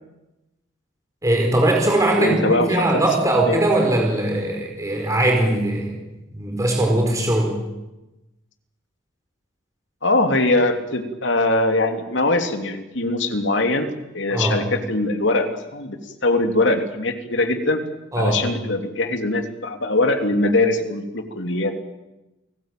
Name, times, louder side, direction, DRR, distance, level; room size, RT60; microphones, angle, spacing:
voice 1, 1.2-6.0 6.3-7.5 14.3-14.6 18.1-18.4, right 1 dB, 15° right, 1 dB, 4.8 m, -20 dB
voice 2, 2.2-3.0 3.4-3.6 10.0-13.9 14.1-17.8 18.2-21.7, left 2 dB, 65° left, 6 dB, 3.0 m, -21 dB
29.5 x 19.0 x 9.1 m, 0.99 s
head